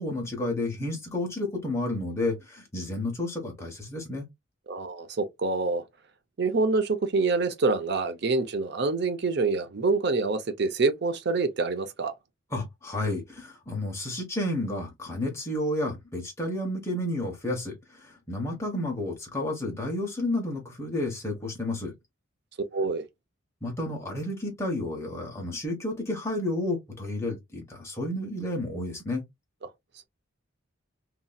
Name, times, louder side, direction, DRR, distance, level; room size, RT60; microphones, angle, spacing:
voice 1, 0.0-4.3 12.5-21.9 23.6-29.2, left 1 dB, 15° left, 1.1 m, -31 dB
voice 2, 4.7-5.8 6.4-12.1 22.7-23.0, right 3 dB, 55° right, 0.6 m, -26 dB
3.0 x 2.7 x 2.2 m
head